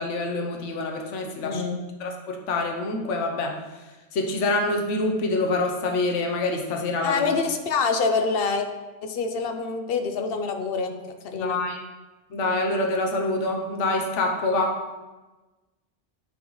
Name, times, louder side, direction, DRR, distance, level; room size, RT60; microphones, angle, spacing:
voice 1, 0.0-1.6 2.0-3.6 4.1-7.2 11.3-11.8 12.3-14.8, left 2 dB, 80° left, 2 dB, 1.1 m, -26 dB
voice 2, 1.4-1.8 7.0-8.7 9.0-10.9 11.3-11.6, left 4 dB, 60° left, 6 dB, 0.8 m, -26 dB
9.3 x 3.8 x 3.1 m, 1.2 s
omnidirectional pair, 1.2 m